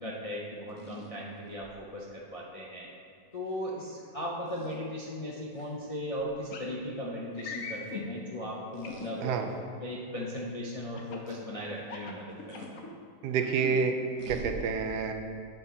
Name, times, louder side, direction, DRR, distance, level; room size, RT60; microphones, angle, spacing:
voice 1, 0.0-2.9 3.3-9.4 9.8-12.3 12.7-12.8, equal, 40° left, -5 dB, 0.5 m, -37 dB
sound 1, 0.7-1.8 3.5-3.6 4.4-4.8 5.5-5.8 6.2-6.4 8.7-9.1 9.7-9.8 11.3-11.4 12.5-12.7 14.2-14.6, right 1 dB, 45° right, 0.4 m, -46 dB
sound 2, 6.5-6.7 7.4-8.1 8.8-9.4 10.9-11.3 11.8-12.9 13.4-13.8, left 5 dB, 60° left, 1.1 m, -40 dB
voice 2, 13.2-14.0 14.3-15.1, right 6 dB, 80° right, 6 dB, 1.2 m, -28 dB
7.9 x 4.4 x 5.5 m, 2.2 s
omnidirectional pair, 1.7 m